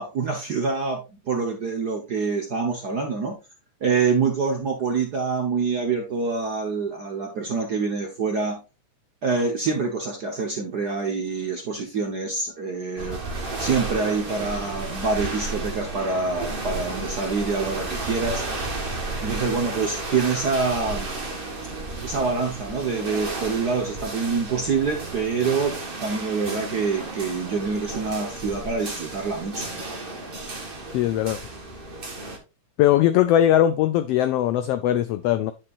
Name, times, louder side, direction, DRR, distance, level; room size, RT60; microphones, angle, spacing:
voice 1, 0.0-3.4 3.8-8.6 9.2-18.4 19.2-21.1 22.0-29.7, right 4 dB, 55° right, 1.1 m, -26 dB
sound 1, 13.0-32.4, right 2 dB, 35° right, 0.8 m, -33 dB
voice 2, 30.9-31.4 32.8-35.5, left 12 dB, 85° left, 1.3 m, -20 dB
9.8 x 5.9 x 2.5 m
omnidirectional pair, 3.3 m